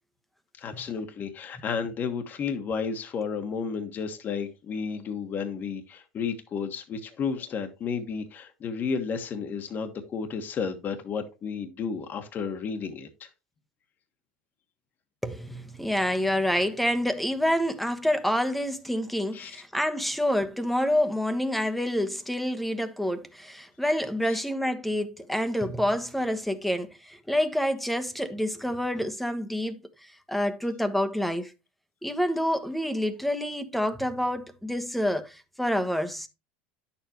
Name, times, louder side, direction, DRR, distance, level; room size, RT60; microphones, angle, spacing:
voice 1, 0.6-13.3 19.3-19.6 24.3-24.4, left 6 dB, 40° left, 1.4 m, -32 dB
voice 2, 15.2-31.5 32.0-36.3, equal, ahead, 1.2 m, -28 dB
10.0 x 7.2 x 3.0 m
supercardioid pair, 100°, 5 cm